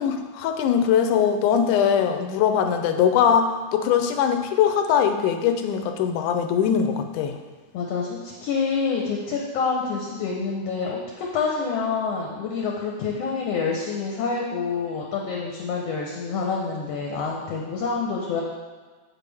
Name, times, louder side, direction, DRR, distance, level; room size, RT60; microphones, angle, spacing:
voice 1, 0.0-7.4, left 8 dB, 85° left, 6 dB, 2.1 m, -21 dB
voice 2, 7.7-18.4, left 5 dB, 70° left, -2 dB, 1.7 m, -27 dB
8.3 x 6.6 x 3.4 m, 1.4 s
omnidirectional pair, 3.5 m